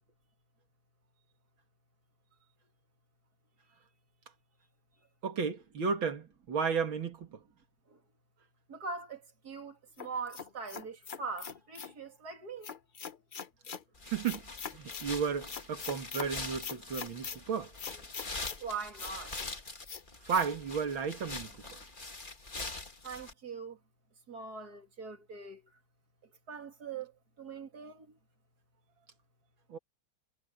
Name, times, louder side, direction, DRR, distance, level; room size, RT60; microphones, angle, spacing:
voice 1, 5.2-7.4 14.1-14.4 14.7-17.7 20.3-21.5 29.7-29.8, right 6 dB, 80° right, 2.8 m, -33 dB
voice 2, 8.7-12.7 18.6-19.3 23.0-23.8 24.3-25.6 26.5-27.1 27.4-28.1, right 5 dB, 50° right, 3.2 m, -42 dB
sound 1, 10.0-12.0 12.6-13.8 14.2-15.1 15.5-16.3 16.6-17.4 17.8-18.6 19.0-19.5 19.9-20.0 20.3-20.5, left 6 dB, 65° left, 0.5 m, -42 dB
sound 2, 14.0-23.3, left 3 dB, 25° left, 2.0 m, -44 dB
omnidirectional pair, 2.1 m